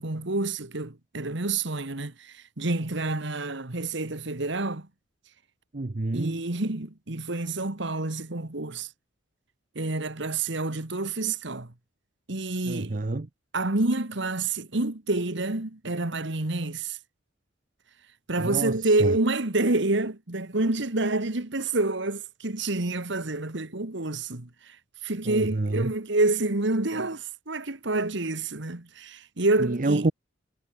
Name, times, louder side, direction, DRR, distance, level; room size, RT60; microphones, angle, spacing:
voice 1, 0.0-4.9 6.1-8.9 9.8-11.7 12.3-13.0 13.5-17.0 18.3-24.8 25.0-30.1, right 2 dB, 60° right, 1.8 m, -28 dB
voice 2, 5.7-6.4 12.7-13.3 18.4-18.7 19.0-19.2 25.3-25.9 29.6-30.1, right 2 dB, 40° right, 0.7 m, -27 dB
head